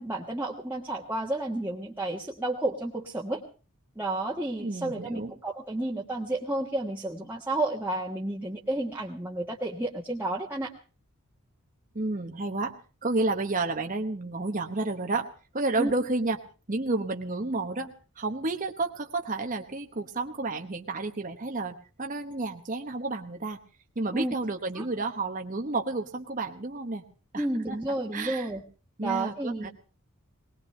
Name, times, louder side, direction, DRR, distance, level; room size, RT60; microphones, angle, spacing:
voice 1, 0.0-3.4 3.9-10.7 15.8-15.9 24.1-24.3 24.7-24.9 27.3-28.6 29.0-29.7, right 2 dB, 10° right, -4 dB, 1.4 m, -31 dB
voice 2, 4.6-5.3 11.9-12.8 13.0-15.3 15.5-16.4 16.7-23.6 24.0-27.0 27.3-27.8 28.1-28.5 29.0-29.7, right 3 dB, 35° right, 4 dB, 1.0 m, -31 dB
20.5 x 20.0 x 3.3 m, 0.36 s
head